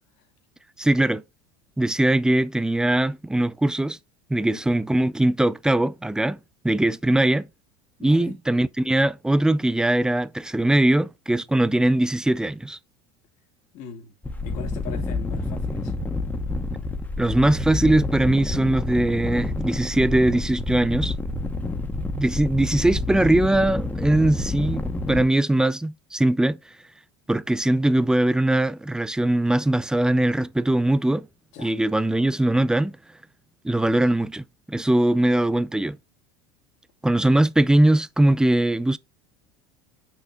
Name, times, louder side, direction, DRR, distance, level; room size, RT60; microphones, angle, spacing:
voice 1, 0.8-1.2 1.8-4.0 4.3-6.4 6.6-7.5 8.0-12.8 17.2-21.1 22.1-26.6 27.3-31.3 31.6-33.0 33.6-36.0 37.0-39.0, right 1 dB, 5° right, 0.5 m, -21 dB
voice 2, 8.0-8.4 13.7-14.1 14.4-15.9 31.5-31.7, left 7 dB, 60° left, 2.5 m, -41 dB
sound 1, 14.2-25.3, left 2 dB, 10° left, 1.5 m, -28 dB
6.3 x 5.4 x 3.4 m
hypercardioid pair, 90°, 14 cm